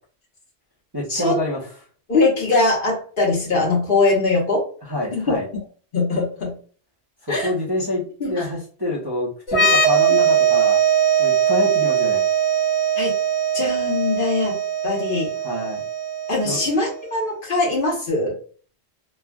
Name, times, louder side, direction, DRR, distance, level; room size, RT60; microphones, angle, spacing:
voice 1, 0.9-1.6 4.9-5.5 7.3-10.8 11.2-12.2 15.4-15.8 16.4-16.6, left 1 dB, 25° right, -6 dB, 0.8 m, -26 dB
voice 2, 2.1-4.6 5.1-5.4 5.9-6.5 7.3-7.5 8.2-8.5 10.1-10.2 13.0-13.1 13.5-14.6 14.8-15.3 16.3-18.3, left 3 dB, 55° left, -2 dB, 1.2 m, -21 dB
sound 1, 9.5-17.0, right 7 dB, 80° left, 1.1 m, -20 dB
3.2 x 2.3 x 2.3 m, 0.41 s
omnidirectional pair, 1.1 m